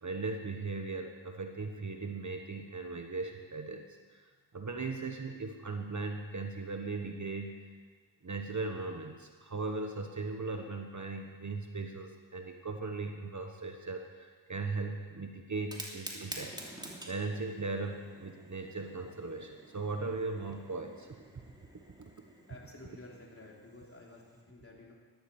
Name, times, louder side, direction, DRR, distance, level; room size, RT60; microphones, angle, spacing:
voice 1, 0.0-3.9 4.1-4.3 4.5-7.7 8.2-16.6 17.1-21.2, right 3 dB, 40° right, 4 dB, 1.3 m, -38 dB
Fire, 15.5-24.4, right 1 dB, 10° right, 2.8 m, -49 dB
voice 2, 22.5-24.9, left 2 dB, 30° left, -3 dB, 3.8 m, -52 dB
12.5 x 12.0 x 7.1 m, 1.5 s
cardioid pair, 65°, 47 cm